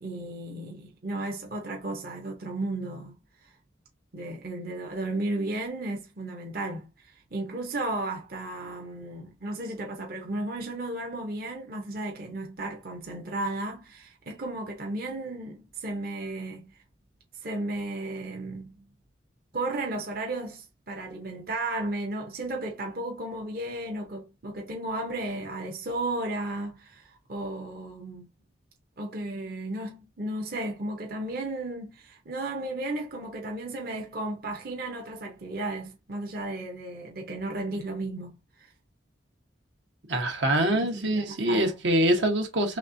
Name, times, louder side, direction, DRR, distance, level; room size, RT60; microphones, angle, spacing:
voice 1, 0.0-3.2 3.4-3.5 4.1-16.7 17.4-18.9 19.5-28.3 29.0-38.7 40.8-41.7, right 2 dB, 50° right, 0.7 m, -34 dB
voice 2, 40.1-42.8, right 1 dB, 85° right, 1.2 m, -24 dB
4.1 x 3.3 x 2.6 m
head